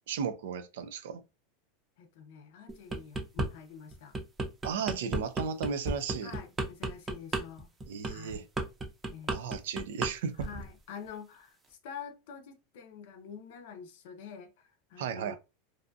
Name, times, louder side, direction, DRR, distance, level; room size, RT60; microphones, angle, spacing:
voice 1, 0.1-1.2 4.6-6.3 7.9-8.4 9.3-10.5 15.0-15.4, right 6 dB, 80° right, 0.4 m, -35 dB
voice 2, 2.0-4.1 6.2-7.7 8.0-8.5 9.1-9.4 10.4-15.4, left 7 dB, 70° left, 0.6 m, -47 dB
sound 1, 2.7-3.5 3.9-10.1 10.4-10.7, right 2 dB, 20° right, 0.6 m, -33 dB
2.6 x 2.3 x 2.5 m
supercardioid pair, 135°, 0 cm